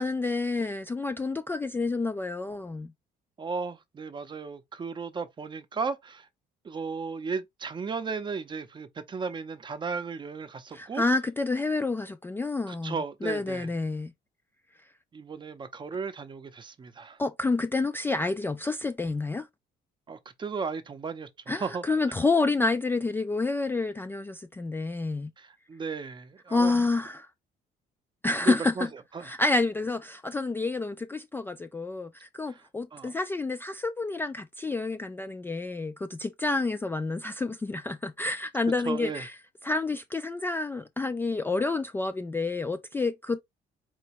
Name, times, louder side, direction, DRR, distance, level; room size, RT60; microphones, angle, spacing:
voice 1, 0.0-2.9 10.7-14.1 17.2-19.5 21.5-25.3 26.5-27.3 28.2-28.9 29.2-39.4 39.6-43.4, left 3 dB, 15° left, 0.3 m, -29 dB
voice 2, 3.4-6.3 6.6-11.0 12.7-13.7 15.1-17.2 20.1-21.8 25.4-26.8 28.4-28.9 29.1-29.3 32.9-33.1 38.9-39.3, right 5 dB, 25° right, 0.6 m, -35 dB
4.4 x 3.0 x 2.9 m
cardioid pair, 110°, 17 cm